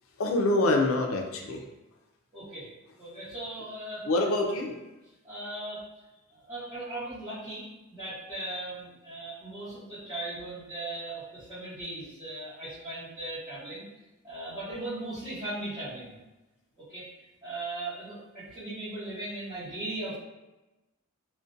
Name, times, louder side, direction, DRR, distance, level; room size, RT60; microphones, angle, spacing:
voice 1, 0.2-1.6 4.0-4.8, left 2 dB, 65° left, 2 dB, 0.4 m, -25 dB
voice 2, 2.3-2.7 3.0-4.0 5.2-5.8 6.3-13.8 14.2-16.1 16.9-17.1 17.4-20.2, right 2 dB, 10° right, -16 dB, 1.0 m, -38 dB
2.5 x 2.1 x 2.5 m, 1.0 s
head